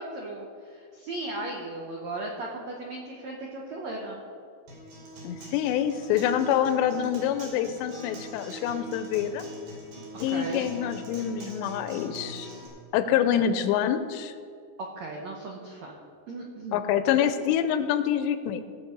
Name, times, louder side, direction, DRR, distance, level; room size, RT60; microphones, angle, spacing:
voice 1, 0.0-4.2 10.3-10.7 14.8-15.9 16.3-16.8, right 2 dB, 85° right, -1 dB, 1.5 m, -36 dB
Acoustic guitar, 4.7-12.7, right 1 dB, 60° right, 5.1 m, -42 dB
voice 2, 5.2-9.4 10.2-12.5 12.9-14.3 16.7-18.6, left 9 dB, 85° left, 10 dB, 2.8 m, -26 dB
19.0 x 6.9 x 5.3 m, 2.3 s
omnidirectional pair, 5.1 m